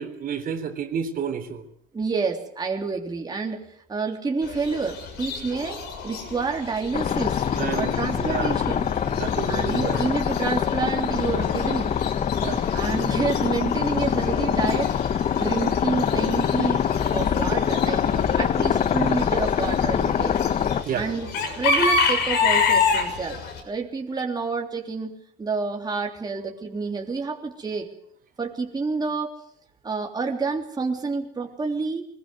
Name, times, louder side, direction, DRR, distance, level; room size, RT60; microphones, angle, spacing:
voice 1, 0.0-1.6 7.5-8.6 9.1-10.2 12.4-12.6 20.8-21.1, right 7 dB, 55° right, 7 dB, 3.8 m, -30 dB
voice 2, 1.9-3.6 3.9-7.4 7.7-8.9 9.5-11.9 12.7-14.9 15.4-16.9 17.1-20.4 20.9-25.1 25.4-27.9 28.4-29.3 29.8-32.0, right 4 dB, 25° right, 1 dB, 3.3 m, -28 dB
Chicken rooster / Bird, 4.4-23.6, left 5 dB, 85° left, 6.4 m, -30 dB
sound 1, 6.9-20.8, left 8 dB, 45° left, 1.0 m, -24 dB
22.5 x 21.5 x 7.9 m, 0.69 s
cardioid pair, 110°, 17 cm